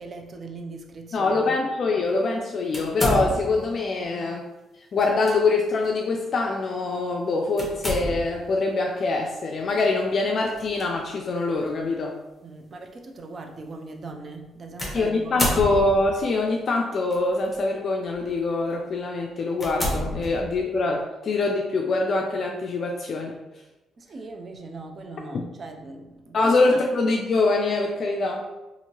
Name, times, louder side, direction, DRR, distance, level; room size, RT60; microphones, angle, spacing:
voice 1, 0.0-1.6 12.4-15.7 20.2-20.3 24.0-26.5, right 3 dB, 45° right, 3 dB, 0.4 m, -40 dB
voice 2, 1.1-4.5 4.9-12.2 14.9-23.4 25.3-25.4 26.3-28.4, left 3 dB, 50° left, 0 dB, 0.3 m, -24 dB
sound 1, 2.7-3.7 5.0-5.4 5.8-5.9 7.6-8.5 10.5-10.8 11.7-11.8 14.8-16.2 17.1-17.5 18.1-18.3 18.9-19.0 19.6-20.8, equal, 15° left, 0.9 m, -29 dB
2.8 x 2.5 x 2.8 m, 1.0 s
cardioid pair, 90°, 0 cm